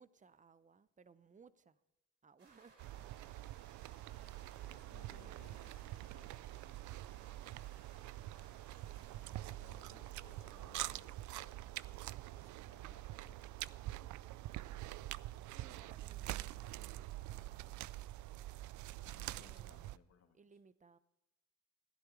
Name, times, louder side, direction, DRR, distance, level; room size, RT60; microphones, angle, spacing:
voice 1, 0.0-1.8 2.2-2.8 3.2-3.7 5.1-5.4 15.5-17.8 19.4-19.8 20.3-21.0, right 5 dB, 25° right, 0.7 m, -63 dB
sound 1, 2.4-10.6, right 4 dB, 55° right, 5.4 m, -65 dB
sound 2, 2.8-20.0, right 16 dB, 75° right, 0.4 m, -46 dB
voice 2, 4.6-6.3 9.3-13.7 19.0-20.4, left 7 dB, 55° left, 2.1 m, -66 dB
15.5 x 10.5 x 4.9 m
cardioid pair, 90°, 30 cm